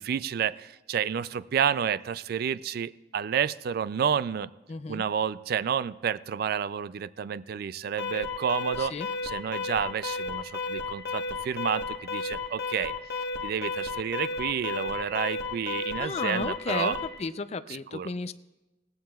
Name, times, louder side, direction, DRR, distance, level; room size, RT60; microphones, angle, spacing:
voice 1, 0.0-4.5 4.9-8.9 9.2-12.9 13.4-16.9 17.9-18.1, right 8 dB, 55° right, 17 dB, 0.3 m, -30 dB
voice 2, 4.7-5.0 8.8-9.1 16.0-18.3, left 4 dB, 35° left, 12 dB, 0.4 m, -33 dB
Alarm, 8.0-17.2, left 3 dB, 60° left, 1.2 m, -33 dB
17.5 x 15.0 x 2.3 m, 1.0 s
head